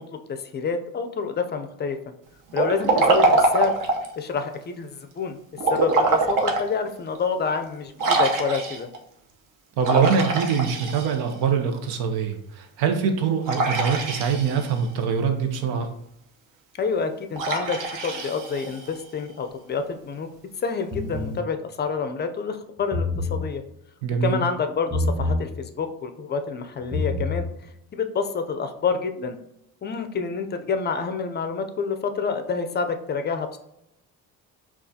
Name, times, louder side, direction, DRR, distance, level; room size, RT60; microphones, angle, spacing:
voice 1, 0.0-2.0 2.5-3.7 4.2-5.4 5.7-8.9 16.8-20.3 20.6-23.6 24.2-29.4 29.8-33.6, left 5 dB, 30° left, 7 dB, 0.4 m, -28 dB
Liquid, 2.5-4.1 5.6-6.7 7.1-7.2 8.0-9.0 9.8-11.4 13.4-14.8 17.3-19.0, right 3 dB, 60° right, 0.8 m, -23 dB
voice 2, 9.8-15.9 24.0-24.4, right 6 dB, 90° right, 5 dB, 0.8 m, -24 dB
sound 1, 20.9-21.4 22.8-23.4 24.9-25.4 26.8-27.4, left 2 dB, 20° right, 1.4 m, -26 dB
5.4 x 2.4 x 2.7 m, 0.81 s
cardioid pair, 105°, 37 cm